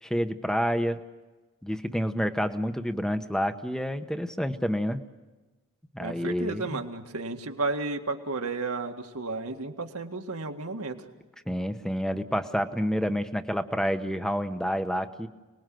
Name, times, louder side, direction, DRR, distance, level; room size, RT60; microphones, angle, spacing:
voice 1, 0.0-1.0 1.6-5.0 5.9-6.8 11.5-15.3, equal, 5° left, 9 dB, 1.0 m, -28 dB
voice 2, 6.0-11.0, right 3 dB, 85° right, 4 dB, 2.0 m, -33 dB
29.5 x 20.5 x 7.8 m, 1.2 s
head